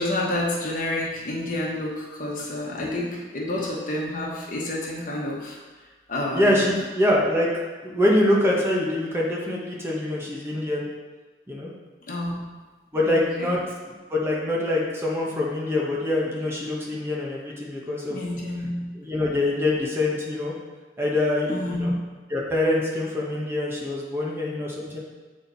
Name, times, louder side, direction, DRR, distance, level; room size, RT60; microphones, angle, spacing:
voice 1, 0.0-5.6 6.1-6.7 12.1-12.5 13.1-13.6 18.1-18.9 21.5-22.0, left 1 dB, 50° left, -3 dB, 1.3 m, -29 dB
voice 2, 6.3-7.5 7.8-10.8 11.5-11.7 12.9-13.6 14.1-18.2 18.9-20.5 21.0-21.9 22.3-25.0, left 1 dB, 15° right, -4 dB, 1.1 m, -24 dB
7.8 x 4.3 x 4.0 m, 1.3 s
head